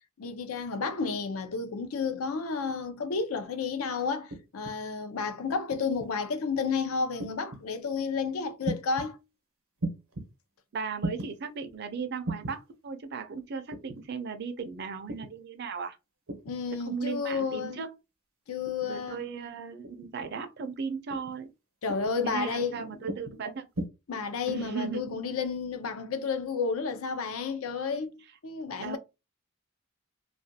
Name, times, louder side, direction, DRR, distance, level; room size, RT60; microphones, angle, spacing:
voice 1, 0.2-9.2 16.4-17.8 18.5-19.3 21.8-23.0 24.1-29.0, left 5 dB, 90° left, 0.5 m, -31 dB
sound 1, 4.3-4.8 5.7-6.1 7.2-7.6 8.6-9.1 9.8-10.3 11.0-11.3 12.2-12.6 13.7-14.0 15.1-15.4 16.3-16.6 17.3-17.6 18.7-19.0 19.8-20.1 21.1-21.4 21.9-22.2 23.1-23.4 23.8-23.9, right 1 dB, 80° right, 0.7 m, -36 dB
voice 2, 10.7-16.0 16.7-17.9 18.9-21.5 22.2-23.7 24.5-25.0 28.8-29.0, right 5 dB, 50° right, 0.4 m, -36 dB
2.4 x 2.2 x 2.6 m
head